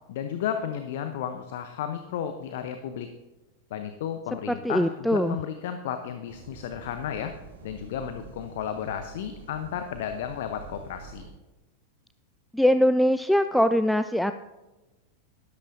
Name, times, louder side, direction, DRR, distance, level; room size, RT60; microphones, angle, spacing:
voice 1, 0.1-3.1 3.7-7.3 7.6-11.3, left 9 dB, 55° left, 8 dB, 0.7 m, -33 dB
voice 2, 4.5-5.4 12.5-14.3, equal, ahead, 10 dB, 0.3 m, -22 dB
sound 1, 6.3-11.3, right 5 dB, 60° right, 2.1 m, -47 dB
13.0 x 11.5 x 2.6 m, 1.1 s
figure-of-eight pair, 90°, 0 cm